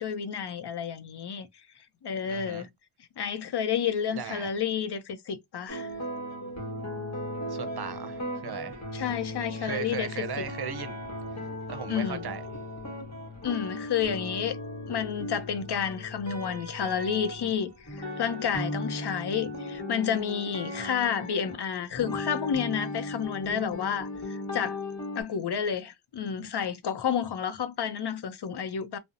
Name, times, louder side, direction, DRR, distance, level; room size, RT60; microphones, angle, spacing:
voice 1, 0.0-1.5 2.0-2.7 3.2-5.9 8.9-10.4 11.9-12.2 13.4-14.6 14.9-24.8 25.2-29.0, left 8 dB, 55° left, 0.5 m, -30 dB
voice 2, 2.2-2.7 4.1-4.5 7.5-8.8 9.6-11.0 11.7-12.4, right 7 dB, 55° right, 0.6 m, -37 dB
sound 1, 5.7-25.2, left 1 dB, 35° left, 1.2 m, -37 dB
2.7 x 2.1 x 2.5 m
cardioid pair, 55°, 48 cm